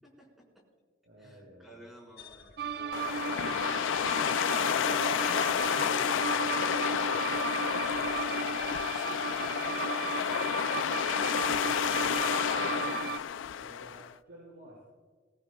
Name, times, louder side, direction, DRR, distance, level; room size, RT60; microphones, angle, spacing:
voice 1, 0.0-0.4 1.2-12.0, equal, ahead, -2 dB, 4.5 m, -53 dB
voice 2, 1.0-1.8 3.7-5.6 6.1-6.4 12.5-14.8, right 1 dB, 90° right, -5 dB, 5.5 m, -54 dB
sound 1, 2.2-14.2, left 2 dB, 55° left, 1.4 m, -49 dB
sound 2, 2.6-13.2, right 7 dB, 55° right, 0.5 m, -35 dB
sound 3, 2.9-14.1, left 9 dB, 85° left, 0.3 m, -30 dB
21.5 x 18.0 x 2.3 m, 1.4 s
head